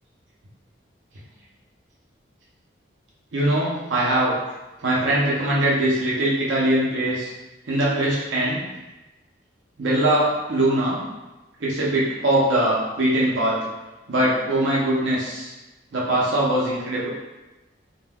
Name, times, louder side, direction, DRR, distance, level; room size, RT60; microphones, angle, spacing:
voice 1, 3.3-4.4 4.8-7.3 7.7-8.6 9.8-11.0 11.6-13.6 14.1-15.5 15.9-17.1, right 1 dB, 85° right, -6 dB, 0.6 m, -21 dB
2.2 x 2.2 x 3.3 m, 1.1 s
head